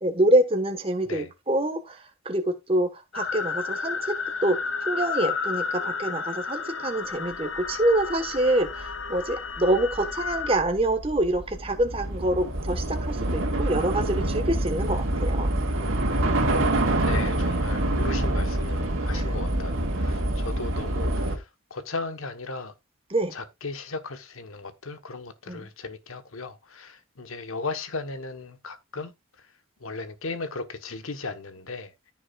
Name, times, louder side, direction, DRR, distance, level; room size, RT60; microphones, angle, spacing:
voice 1, 0.0-4.1 4.4-4.6 4.8-15.5 19.1-19.4 23.1-23.3 25.5-25.7, right 1 dB, 25° right, 1.3 m, -26 dB
sound 1, 3.1-10.6, left 5 dB, 65° left, 0.9 m, -32 dB
Train / Subway metro underground, 8.0-8.1 8.4-21.4, right 1 dB, 75° right, 2.1 m, -26 dB
voice 2, 17.0-22.7 23.3-29.1 29.8-31.9, left 3 dB, 80° left, 1.2 m, -36 dB
14.0 x 6.1 x 2.4 m
head